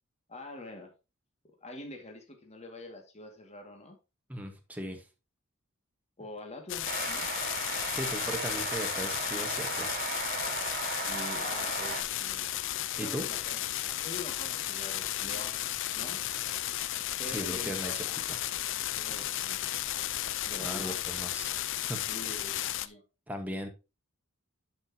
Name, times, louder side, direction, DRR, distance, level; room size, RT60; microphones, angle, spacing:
voice 1, 0.3-0.9 1.6-4.0 6.2-7.3 11.1-12.6 13.0-13.6 13.9-15.6 15.9-16.2 17.2-18.2 18.9-19.7 20.5-21.0 22.1-23.0, left 2 dB, 30° left, 3 dB, 2.2 m, -45 dB
voice 2, 4.3-5.0 7.9-10.0 13.0-13.3 17.3-18.4 20.6-21.5 21.9-22.0 23.3-23.7, right 1 dB, 5° right, 3 dB, 1.4 m, -38 dB
sound 1, 6.7-22.9, left 13 dB, 60° left, 0.6 m, -34 dB
sound 2, 6.8-12.0, right 5 dB, 45° right, 1.9 m, -36 dB
11.0 x 6.2 x 2.9 m, 0.28 s
head